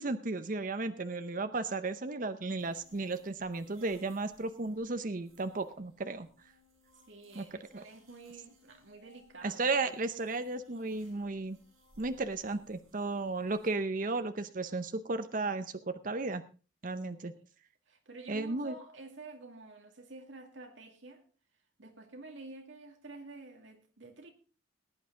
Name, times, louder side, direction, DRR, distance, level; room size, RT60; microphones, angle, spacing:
voice 1, 0.0-6.3 7.3-7.4 7.7-7.8 9.4-11.6 12.0-16.4 16.8-17.3 18.3-18.8, right 3 dB, 40° right, 0.7 m, -34 dB
sound 1, 2.6-13.7, left 1 dB, 90° right, 6.8 m, -64 dB
voice 2, 7.1-9.6 17.4-17.5 17.9-21.2 21.8-24.3, right 3 dB, 65° right, 2.1 m, -49 dB
19.0 x 9.2 x 3.8 m
head